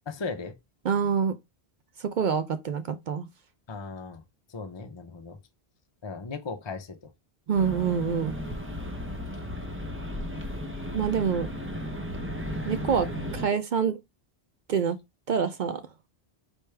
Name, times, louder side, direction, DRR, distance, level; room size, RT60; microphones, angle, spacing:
voice 1, 0.1-0.5 3.7-4.2 4.5-5.4 6.0-7.1, left 4 dB, 35° left, 0.5 m, -37 dB
voice 2, 0.8-1.4 2.0-3.2 7.5-8.4 10.9-11.5 12.6-13.1 13.3-14.0 14.7-15.0 15.3-15.8, right 7 dB, 60° right, 0.6 m, -26 dB
sound 1, 7.5-13.5, equal, 15° right, 0.6 m, -34 dB
4.4 x 3.4 x 3.2 m
omnidirectional pair, 1.1 m